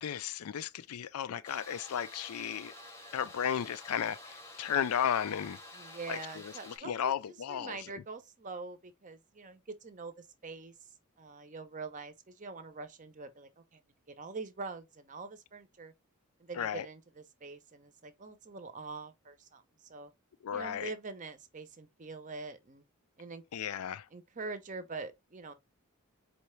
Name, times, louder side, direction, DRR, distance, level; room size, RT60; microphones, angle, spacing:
voice 1, 0.0-2.7 3.1-5.6 6.1-7.8 16.5-16.9 20.4-20.9 23.5-24.1, left 8 dB, 80° left, 0.4 m, -34 dB
sound 1, 1.4-6.8, left 1 dB, 10° left, 0.8 m, -50 dB
voice 2, 5.7-10.7 11.2-13.8 14.1-15.9 16.4-20.1 20.5-22.8 23.2-23.4 24.1-25.5, right 4 dB, 35° right, 0.6 m, -44 dB
4.3 x 3.2 x 3.1 m
head